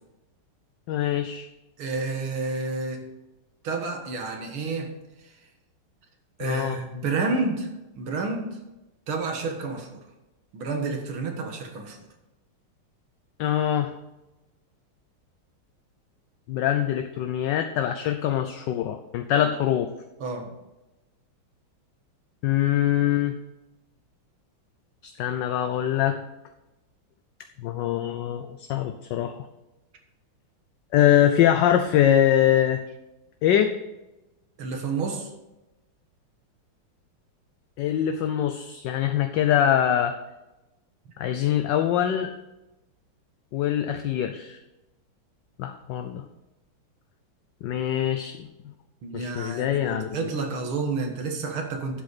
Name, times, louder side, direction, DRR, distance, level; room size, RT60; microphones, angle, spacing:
voice 1, 0.9-1.5 6.4-6.8 13.4-13.9 16.5-19.9 22.4-23.4 25.2-26.2 27.6-29.4 30.9-32.8 33.4-33.7 37.8-40.1 41.2-42.3 43.5-44.6 45.6-46.2 47.6-48.5 49.1-50.2, left 10 dB, 70° left, 8 dB, 1.1 m, -23 dB
voice 2, 1.8-3.0 3.6-4.9 5.2-5.3 6.4-7.7 8.0-8.6 9.1-10.0 10.5-12.0 19.3-19.5 20.2-20.5 34.6-35.3 41.1-41.2 49.0-52.0, right 3 dB, 75° right, 3 dB, 2.3 m, -30 dB
11.5 x 7.8 x 4.1 m, 0.99 s
omnidirectional pair, 2.3 m